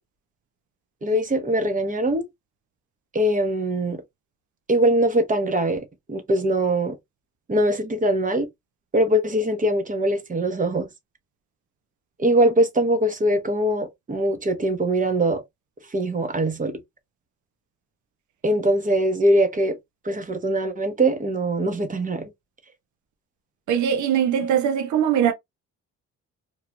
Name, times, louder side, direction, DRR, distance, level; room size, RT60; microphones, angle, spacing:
voice 1, 1.0-2.3 3.1-4.0 4.7-7.0 7.5-8.5 8.9-10.9 12.2-15.4 15.9-16.8 18.4-19.8 20.0-22.3, right 1 dB, 25° right, 0.9 m, -22 dB
voice 2, 23.7-25.3, right 9 dB, 75° right, 0.7 m, -21 dB
3.1 x 2.3 x 2.5 m
cardioid pair, 90°, 30 cm